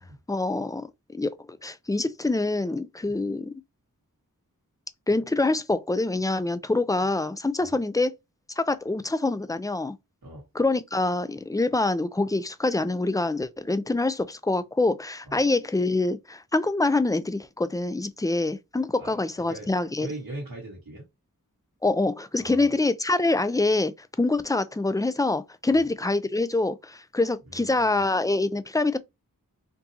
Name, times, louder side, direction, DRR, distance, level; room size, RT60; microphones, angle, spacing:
voice 1, 0.3-3.5 5.1-8.1 8.6-10.0 10.5-20.1 21.8-29.0, left 2 dB, 10° left, 0.4 m, -25 dB
voice 2, 20.0-21.1 22.4-22.7 25.7-25.9 27.5-28.0, right 1 dB, 90° right, 1.5 m, -40 dB
4.4 x 2.8 x 2.8 m
wide cardioid pair, 55°, 34 cm